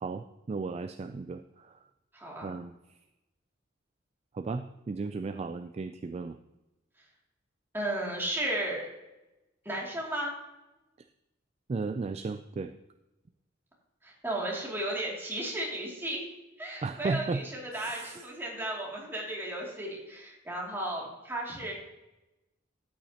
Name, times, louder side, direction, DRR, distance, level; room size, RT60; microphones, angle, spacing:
voice 1, 0.0-1.7 2.4-2.7 4.3-6.3 11.7-12.7 16.8-17.4 17.7-18.2, right 4 dB, 35° right, 9 dB, 0.3 m, -35 dB
voice 2, 2.1-2.5 7.7-8.9 9.6-10.3 14.0-16.2 16.6-21.7, right 1 dB, 10° right, -3 dB, 2.5 m, -34 dB
12.5 x 8.6 x 2.9 m, 0.99 s
head